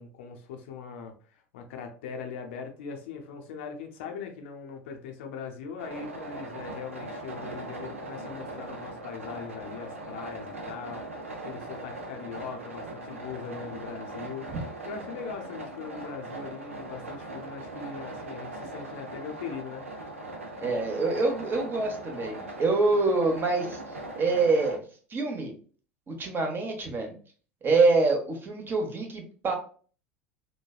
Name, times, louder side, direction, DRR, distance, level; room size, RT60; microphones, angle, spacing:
voice 1, 0.0-14.5 14.8-19.8, left 6 dB, 65° left, 4 dB, 0.5 m, -40 dB
sound 1, 5.8-24.8, right 2 dB, 85° right, 0.5 m, -40 dB
voice 2, 20.6-23.8 24.2-24.8 25.1-25.5 26.1-27.1 27.6-29.5, right 3 dB, 30° right, 3 dB, 0.8 m, -25 dB
3.1 x 2.2 x 2.3 m, 0.41 s
figure-of-eight pair, 75°, 7 cm